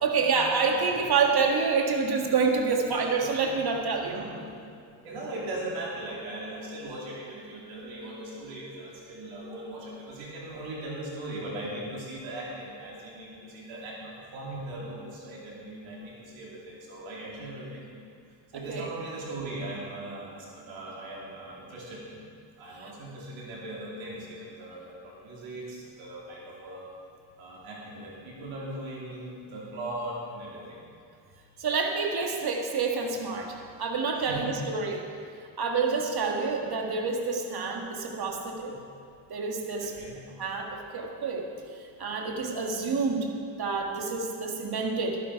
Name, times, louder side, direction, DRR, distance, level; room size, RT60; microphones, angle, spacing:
voice 1, 0.0-4.2 18.7-18.9 22.8-22.9 31.6-35.1 35.6-38.7 39.3-39.9 40.4-43.3 43.6-45.2, right 4 dB, 55° right, 2 dB, 1.9 m, -28 dB
voice 2, 2.9-3.3 4.0-17.9 18.5-22.1 22.6-26.8 27.4-30.8 34.3-34.7 38.7-38.8 39.8-40.2, right 1 dB, 85° right, -4 dB, 3.1 m, -39 dB
12.0 x 12.0 x 4.8 m, 2.3 s
supercardioid pair, 60°, 46 cm